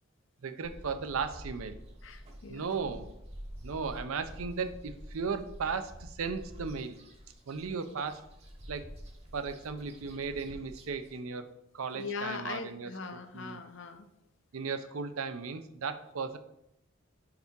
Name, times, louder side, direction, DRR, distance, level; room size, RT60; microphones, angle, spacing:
voice 1, 0.4-1.8 2.5-3.1 3.6-7.0 7.5-8.2 8.7-8.9 9.3-11.5 11.7-12.9 13.3-13.6 14.5-16.4, right 5 dB, 75° right, 9 dB, 0.5 m, -36 dB
sound 1, 0.6-11.2, equal, 30° right, 0.9 m, -48 dB
voice 2, 2.0-2.7 10.2-10.3 11.9-14.1, left 4 dB, 55° left, 8 dB, 0.6 m, -40 dB
4.8 x 4.6 x 5.3 m, 0.82 s
head